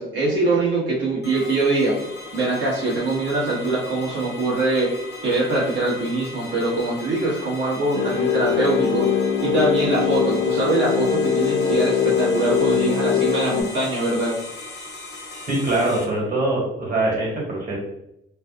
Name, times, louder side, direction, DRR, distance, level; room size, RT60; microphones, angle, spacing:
voice 1, 0.0-2.0 2.3-4.9 5.2-9.1 9.4-14.4, right 2 dB, 65° right, -6 dB, 1.4 m, -23 dB
sound 1, 1.2-16.0, left 2 dB, 55° left, 0.9 m, -38 dB
sound 2, 7.9-13.6, left 7 dB, 35° left, 0.5 m, -22 dB
voice 2, 15.5-17.8, right 2 dB, 45° right, -4 dB, 1.4 m, -23 dB
3.3 x 2.4 x 2.4 m, 0.82 s
cardioid pair, 90°, 20 cm